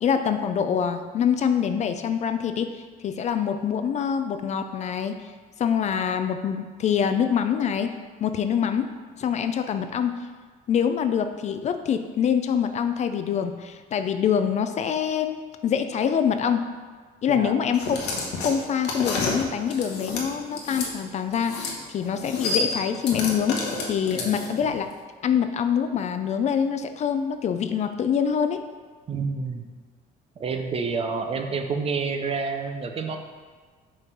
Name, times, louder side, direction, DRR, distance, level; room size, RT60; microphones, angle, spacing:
voice 1, 0.0-5.2 5.6-7.9 8.2-8.9 9.2-10.2 10.7-16.7 17.2-18.0 18.4-24.9 25.2-28.6, left 8 dB, 45° left, 9 dB, 0.4 m, -25 dB
sound 1, 17.7-20.9 21.3-21.8 22.0-24.7, left 4 dB, 85° left, 1.0 m, -30 dB
voice 2, 29.1-29.7 30.4-33.2, right 4 dB, 35° right, 5 dB, 0.6 m, -28 dB
5.7 x 3.3 x 5.3 m, 1.5 s
cardioid pair, 110°, 17 cm